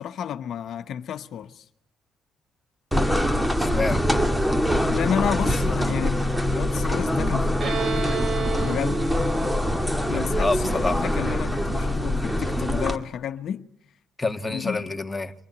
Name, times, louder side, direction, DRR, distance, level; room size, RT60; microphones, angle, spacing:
voice 1, 0.0-1.6 4.9-7.8 8.6-9.0 10.1-13.6 14.5-14.9, left 9 dB, 70° left, 1.0 m, -31 dB
sound 1, 2.9-13.0, left 1 dB, 5° right, 2.0 m, -24 dB
voice 2, 3.6-4.0 10.2-11.1 14.2-15.3, left 3 dB, 15° left, 1.4 m, -27 dB
Bowed string instrument, 7.6-11.2, right 7 dB, 50° right, 3.4 m, -32 dB
24.0 x 19.5 x 9.5 m
cardioid pair, 90°, 0 cm